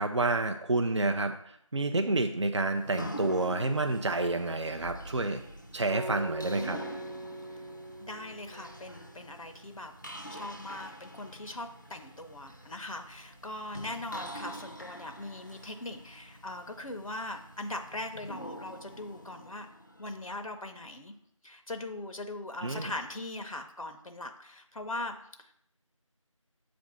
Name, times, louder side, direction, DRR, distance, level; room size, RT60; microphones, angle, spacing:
voice 1, 0.0-1.3 1.7-5.4 5.7-6.8 22.6-22.9, right 2 dB, 55° right, 6 dB, 0.4 m, -29 dB
sound 1, 2.7-20.6, equal, 35° left, 0.4 m, -46 dB
Acoustic guitar, 5.9-9.2, right 1 dB, 90° right, 1.1 m, -41 dB
voice 2, 8.0-9.9 10.3-19.7 20.0-21.1 21.4-25.5, left 2 dB, 80° left, 6 dB, 0.7 m, -40 dB
7.2 x 2.6 x 5.6 m, 0.72 s
figure-of-eight pair, 175°, 17 cm